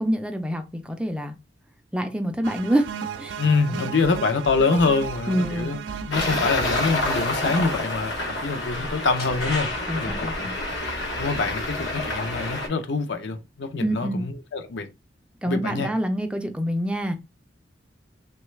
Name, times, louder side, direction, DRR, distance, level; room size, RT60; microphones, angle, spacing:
voice 1, 0.0-1.3 1.9-2.9 3.2-3.4 3.7-3.8 5.3-5.7 9.9-10.5 13.8-14.2 15.4-17.2, equal, 5° right, 0.3 m, -26 dB
sound 1, 2.4-7.8, right 6 dB, 85° right, 0.3 m, -35 dB
voice 2, 3.4-10.5 11.2-14.9 15.4-15.9, left 4 dB, 70° left, 0.5 m, -25 dB
Traffic noise roadway noise, 6.1-12.7, left 2 dB, 90° left, 1.0 m, -28 dB
Slam, 9.2-10.4, left 3 dB, 55° left, 1.0 m, -43 dB
3.1 x 2.3 x 3.1 m
head